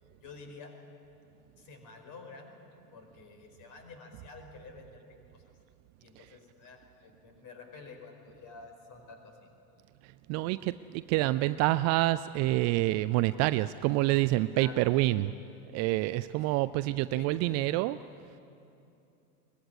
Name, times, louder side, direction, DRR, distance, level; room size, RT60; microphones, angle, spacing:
voice 1, 0.2-0.7 1.6-2.5 2.9-5.0 5.3-5.4 6.0-9.5 14.5-14.9 16.5-16.7 17.1-17.6, left 4 dB, 40° left, 5 dB, 4.9 m, -49 dB
voice 2, 10.0-15.3 15.7-18.0, right 17 dB, 35° right, 14 dB, 0.5 m, -27 dB
23.5 x 19.5 x 9.7 m, 2.7 s
figure-of-eight pair, 75°, 47 cm